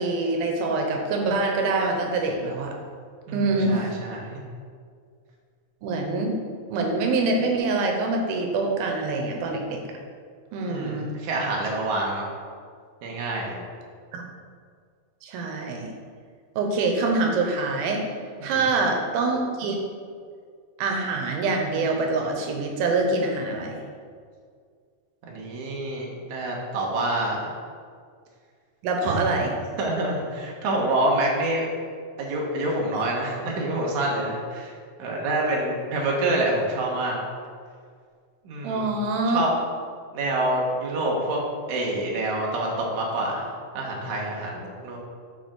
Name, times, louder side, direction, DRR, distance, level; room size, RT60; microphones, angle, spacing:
voice 1, 0.0-2.8 3.3-3.9 5.8-6.3 6.7-9.8 10.5-11.1 14.1-14.2 15.2-15.9 16.6-18.0 18.4-19.8 20.8-23.8 28.8-29.5 38.6-39.5, right 3 dB, 90° right, 2 dB, 2.7 m, -25 dB
voice 2, 3.3-4.3 10.7-12.3 13.0-13.6 18.4-18.6 23.5-23.7 25.2-27.5 29.0-29.2 29.8-31.7 32.2-34.7 35.0-37.2 38.4-38.9 39.3-39.5 40.1-41.4 41.7-43.5 43.7-45.0, right 2 dB, 65° right, -2 dB, 2.4 m, -27 dB
7.0 x 4.9 x 6.2 m, 2.1 s
omnidirectional pair, 4.2 m